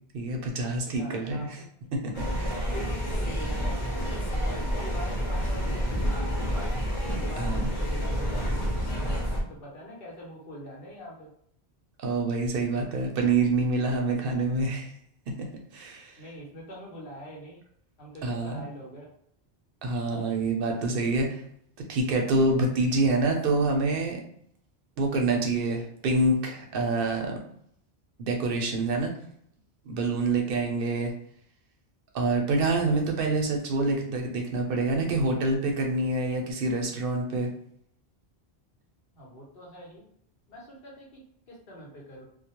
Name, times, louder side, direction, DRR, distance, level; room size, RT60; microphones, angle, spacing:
voice 1, 0.1-1.6 1.9-2.7 7.4-7.7 12.0-14.9 15.4-15.5 15.7-16.2 18.2-18.6 19.8-21.4 21.8-24.2 25.0-27.4 28.2-29.1 29.9-31.1 32.1-37.5, right 2 dB, 65° right, 2 dB, 0.7 m, -26 dB
voice 2, 0.9-1.7 2.7-4.0 4.3-6.8 7.1-9.0 9.5-11.3 16.2-17.6 18.0-19.1 39.1-40.0 40.5-41.2 41.5-42.2, equal, 60° left, -3 dB, 0.9 m, -44 dB
sound 1, 2.1-9.4, equal, 35° left, 0.5 m, -29 dB
2.2 x 2.0 x 2.8 m, 0.69 s
omnidirectional pair, 1.1 m